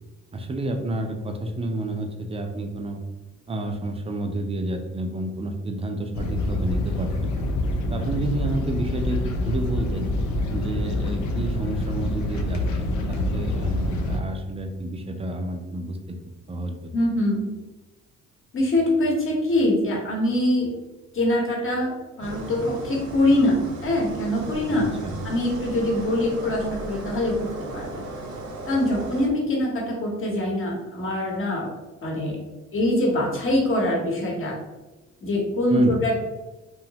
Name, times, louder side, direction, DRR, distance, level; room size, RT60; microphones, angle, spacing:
voice 1, 0.3-3.0 3.5-7.4 7.9-10.1 10.5-16.2 16.5-16.7 24.7-25.1 35.7-36.0, right 2 dB, 20° right, 4 dB, 0.4 m, -30 dB
sound 1, 6.1-14.2, left 1 dB, 75° left, 0.5 m, -26 dB
voice 2, 16.9-17.5 18.5-20.7 21.1-21.9 22.2-23.6 23.8-24.9 25.2-28.0 28.7-31.7 32.0-32.4 32.7-34.5 35.2-36.2, left 1 dB, 45° left, -2 dB, 1.0 m, -23 dB
sound 2, 22.2-29.3, right 2 dB, 55° right, 0.7 m, -36 dB
2.9 x 2.0 x 2.7 m, 1.1 s
cardioid pair, 90°, 30 cm